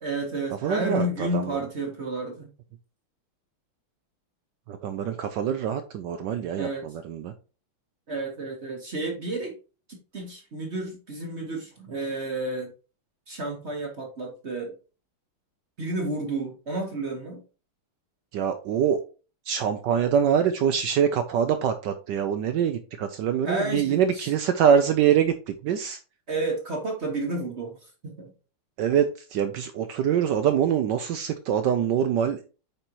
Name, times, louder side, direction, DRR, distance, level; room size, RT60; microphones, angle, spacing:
voice 1, 0.0-2.5 6.6-6.9 8.1-9.5 9.9-12.7 13.3-14.7 15.8-17.4 23.4-24.3 26.3-28.3, right 2 dB, 40° right, 2 dB, 1.1 m, -31 dB
voice 2, 0.6-1.6 4.7-7.3 18.3-19.0 19.5-26.0 28.8-32.5, right 8 dB, 80° right, 9 dB, 1.0 m, -24 dB
8.7 x 4.2 x 2.9 m, 0.34 s
omnidirectional pair, 2.4 m